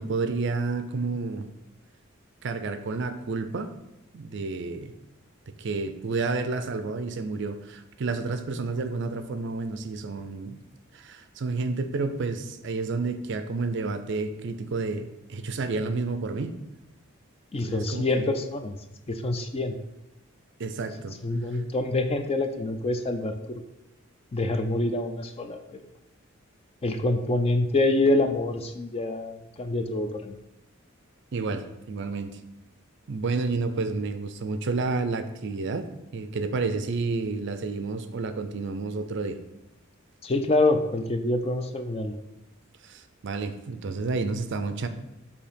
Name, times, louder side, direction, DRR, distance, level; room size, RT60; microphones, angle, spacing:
voice 1, 0.0-1.5 2.4-3.7 4.1-4.9 5.6-10.6 10.9-16.6 17.6-18.3 20.6-21.2 31.3-32.3 33.1-35.8 36.1-39.4 42.8-44.9, right 3 dB, 55° right, 9 dB, 0.4 m, -30 dB
voice 2, 17.5-18.7 19.1-19.8 21.2-23.6 24.3-25.8 26.8-30.4 40.2-42.1, left 2 dB, 30° left, 7 dB, 0.4 m, -26 dB
6.9 x 2.8 x 5.1 m, 0.92 s
head